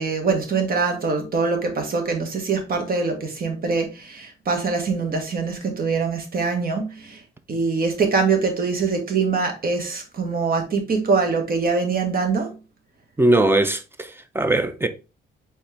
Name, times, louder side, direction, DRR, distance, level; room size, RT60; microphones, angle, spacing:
voice 1, 0.0-7.2 7.5-12.6, right 4 dB, 50° right, 1.3 m, -23 dB
voice 2, 13.2-14.9, right 2 dB, 10° right, 0.6 m, -20 dB
4.3 x 3.1 x 3.3 m
cardioid pair, 90°, 20 cm